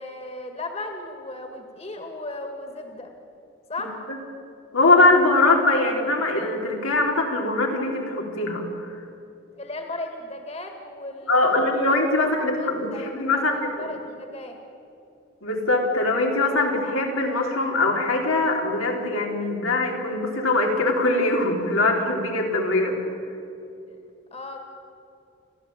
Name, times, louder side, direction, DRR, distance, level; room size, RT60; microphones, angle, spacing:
voice 1, 0.0-3.1 3.7-4.0 9.5-11.9 12.2-12.3 12.6-14.6 24.3-24.6, left 2 dB, 30° left, 4 dB, 2.0 m, -36 dB
voice 2, 4.7-9.0 11.3-13.6 15.4-23.0, left 2 dB, 90° left, 0 dB, 3.8 m, -22 dB
30.0 x 13.0 x 9.0 m, 2.7 s
head